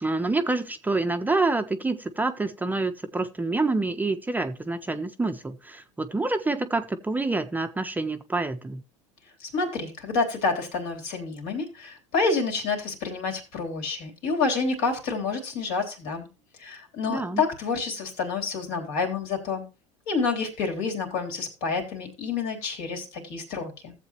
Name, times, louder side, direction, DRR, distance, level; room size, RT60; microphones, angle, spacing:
voice 1, 0.0-8.8 17.1-17.4, right 3 dB, 10° right, 0.6 m, -27 dB
voice 2, 9.4-16.2 16.6-19.6 20.1-23.9, left 4 dB, 65° left, 3.3 m, -28 dB
15.5 x 7.5 x 2.9 m
hypercardioid pair, 95°, 16 cm